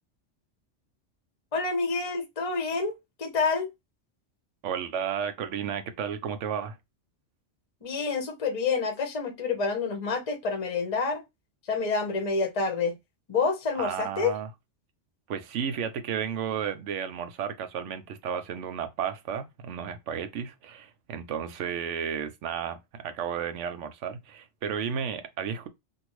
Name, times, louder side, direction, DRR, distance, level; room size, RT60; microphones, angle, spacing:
voice 1, 1.5-3.7 7.8-11.2 11.6-13.0 13.3-14.3, left 4 dB, 35° left, 0.8 m, -28 dB
voice 2, 4.6-6.8 13.8-14.5 15.3-25.7, right 8 dB, 80° right, 0.9 m, -33 dB
2.7 x 2.7 x 3.0 m
omnidirectional pair, 1.3 m